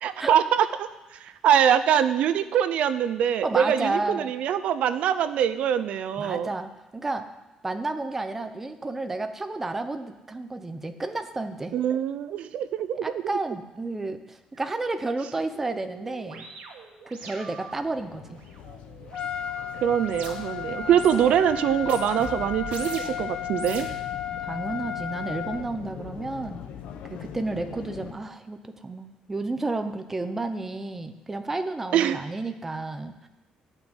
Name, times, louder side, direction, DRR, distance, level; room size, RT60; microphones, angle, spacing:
voice 1, 0.0-6.5 11.7-13.0 19.8-23.9 31.9-32.2, right 9 dB, 55° right, 12 dB, 0.6 m, -23 dB
voice 2, 3.4-4.3 6.2-7.3 7.6-11.8 13.0-16.5 17.1-18.4 20.8-21.3 24.4-26.7 27.0-33.3, right 2 dB, 10° right, 8 dB, 0.8 m, -31 dB
sound 1, 14.6-14.7 15.0-20.6 20.9-21.4 21.8-23.2 23.5-24.4, right 5 dB, 75° right, 2.2 m, -43 dB
sound 2, 17.6-28.1, left 8 dB, 70° left, 1.2 m, -42 dB
Trumpet, 19.1-25.6, left 9 dB, 35° left, 0.8 m, -34 dB
14.0 x 6.2 x 9.8 m, 1.0 s
cardioid pair, 175°, 2 cm